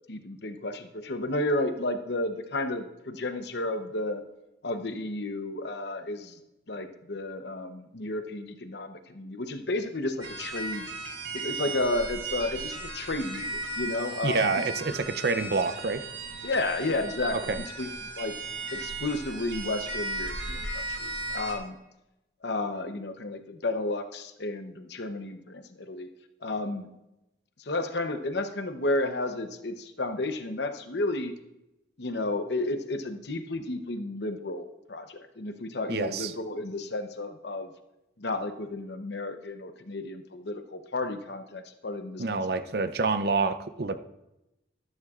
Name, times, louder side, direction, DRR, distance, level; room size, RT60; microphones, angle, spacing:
voice 1, 0.1-4.2 4.6-6.4 6.7-10.9 11.3-14.9 16.4-17.5 17.8-17.9 18.2-18.4 18.7-21.8 22.4-26.1 26.4-26.9 27.6-31.3 32.0-37.7 38.2-42.7, left 2 dB, 60° left, 8 dB, 0.9 m, -32 dB
sound 1, 10.2-21.6, right 2 dB, 75° right, 1.8 m, -36 dB
voice 2, 14.2-16.1 17.3-17.6 35.9-36.3 42.2-44.0, right 4 dB, 55° right, 12 dB, 0.6 m, -27 dB
13.0 x 12.5 x 2.5 m, 0.92 s
head